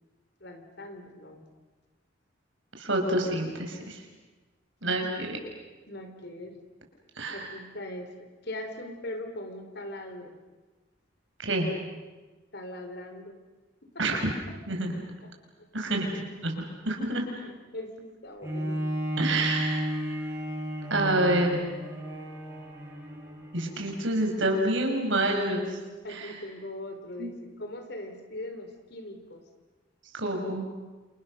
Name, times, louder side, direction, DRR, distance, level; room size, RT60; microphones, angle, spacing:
voice 1, 0.4-1.4 5.9-6.6 7.3-10.4 12.5-13.4 13.8-14.0 15.6-15.7 17.3-18.9 26.0-29.4, left 1 dB, 55° left, 6 dB, 3.9 m, -40 dB
voice 2, 2.8-4.0 4.8-5.4 7.2-7.5 11.4-11.7 14.0-14.2 14.7-14.9 15.7-17.3 19.2-20.2 20.9-21.6 23.5-25.8 26.1-26.3 27.2-27.3 30.2-30.7, right 1 dB, 75° right, 2 dB, 6.2 m, -28 dB
Bowed string instrument, 18.4-24.1 24.7-24.8, equal, 15° right, 7.0 m, -33 dB
29.0 x 28.5 x 6.7 m, 1.2 s
head